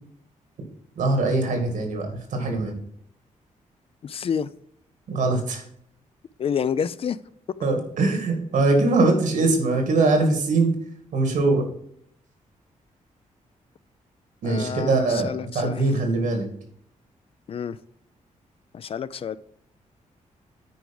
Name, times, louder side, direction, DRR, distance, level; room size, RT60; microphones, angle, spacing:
voice 1, 1.0-2.8 5.1-5.6 7.6-10.7 11.1-11.7 14.4-16.5, right 2 dB, 80° right, 2.1 m, -22 dB
voice 2, 4.0-4.5 6.4-7.2 14.4-15.8 17.5-17.8 18.7-19.4, left 7 dB, 45° left, 0.4 m, -28 dB
9.3 x 4.8 x 5.4 m
cardioid pair, 115°, 13 cm